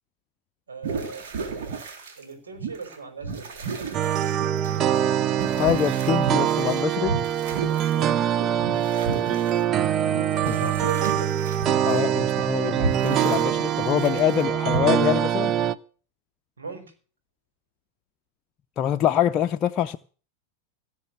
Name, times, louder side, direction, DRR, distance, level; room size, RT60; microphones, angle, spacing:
voice 1, 0.7-1.3 2.2-3.5 7.9-8.2 10.6-11.4 16.6-16.9, right 4 dB, 70° right, 5.5 m, -37 dB
sound 1, 0.8-2.2 2.6-3.0 3.2-9.6 10.0-12.0 12.6-14.4 14.7-14.8, right 4 dB, 55° right, 3.8 m, -33 dB
sound 2, 3.9-15.7, right 10 dB, 30° right, 0.7 m, -24 dB
voice 2, 5.4-7.2 10.5-10.6 11.8-15.5 18.8-20.0, left 10 dB, 30° left, 0.6 m, -25 dB
18.0 x 6.6 x 8.4 m
figure-of-eight pair, 90°, 0 cm